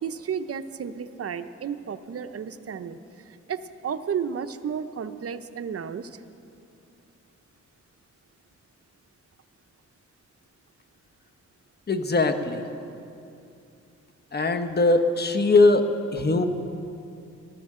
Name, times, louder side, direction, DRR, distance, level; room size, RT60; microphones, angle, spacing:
voice 1, 0.0-6.2, right 7 dB, 50° right, 10 dB, 0.7 m, -33 dB
voice 2, 11.9-12.6 14.3-16.5, left 2 dB, 35° left, 7 dB, 1.1 m, -21 dB
20.5 x 13.0 x 3.7 m, 2.6 s
cardioid pair, 70°, 30 cm